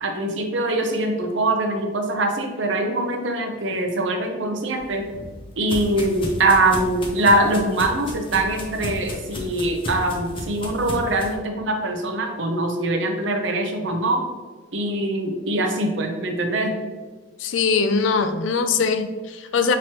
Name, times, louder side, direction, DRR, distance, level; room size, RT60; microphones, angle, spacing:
voice 1, 0.0-5.0 5.6-14.2 14.7-16.7, right 2 dB, 70° right, 4 dB, 0.7 m, -23 dB
sound 1, 4.8-11.3, left 1 dB, 25° left, 0.6 m, -33 dB
voice 2, 17.4-19.8, left 5 dB, 75° left, 8 dB, 0.4 m, -21 dB
6.0 x 3.0 x 2.9 m, 1.4 s
head